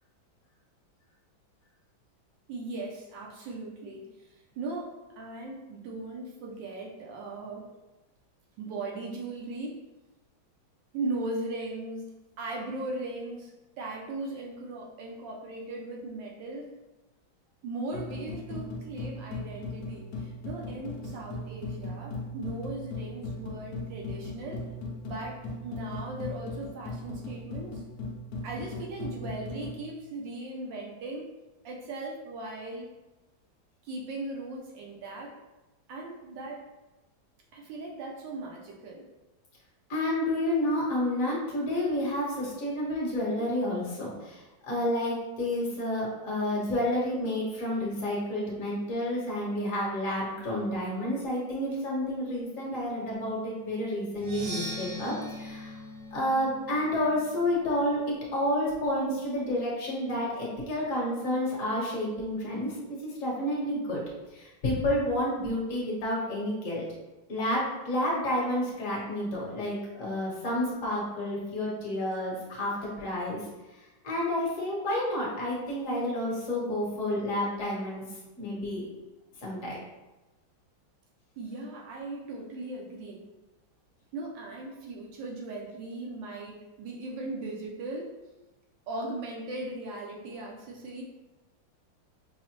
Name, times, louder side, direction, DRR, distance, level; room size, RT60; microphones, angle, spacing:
voice 1, 2.5-7.7 8.6-9.8 10.9-16.7 17.6-24.7 25.0-27.8 28.4-31.3 31.6-32.9 33.8-35.3 35.9-36.7 37.5-39.1 81.4-83.2 84.1-88.2 88.9-91.0, right 2 dB, 75° right, -1 dB, 1.2 m, -38 dB
sound 1, 17.9-29.8, left 2 dB, 70° left, 0.9 m, -38 dB
voice 2, 39.9-55.8 56.1-64.0 64.3-66.8 67.3-73.4 74.0-78.0 78.4-78.8 79.4-79.8, left 1 dB, 50° left, -4 dB, 1.2 m, -30 dB
Percussion, 54.1-57.9, equal, 55° right, 1.1 m, -41 dB
5.4 x 2.0 x 2.9 m, 1.1 s
omnidirectional pair, 2.2 m